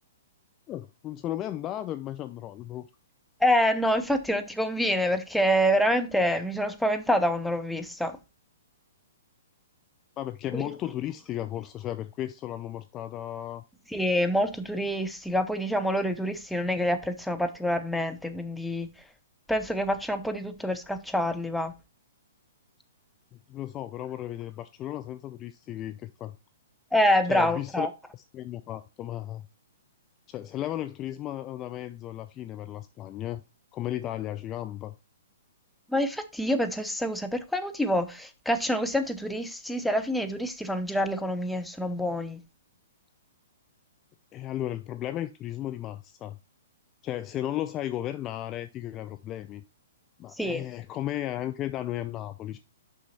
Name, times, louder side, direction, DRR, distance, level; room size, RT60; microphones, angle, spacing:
voice 1, 0.7-2.9 10.2-13.6 23.5-26.4 27.3-27.9 28.1-29.5 30.3-33.4 33.7-34.9 44.3-46.4 47.0-49.6 50.2-52.6, left 13 dB, 25° left, 0.4 m, -35 dB
voice 2, 3.4-8.2 10.5-10.7 13.9-18.9 19.5-21.7 26.9-27.9 35.9-42.4 50.4-50.6, equal, ahead, 0.8 m, -26 dB
6.3 x 5.6 x 4.1 m
hypercardioid pair, 130°, 0 cm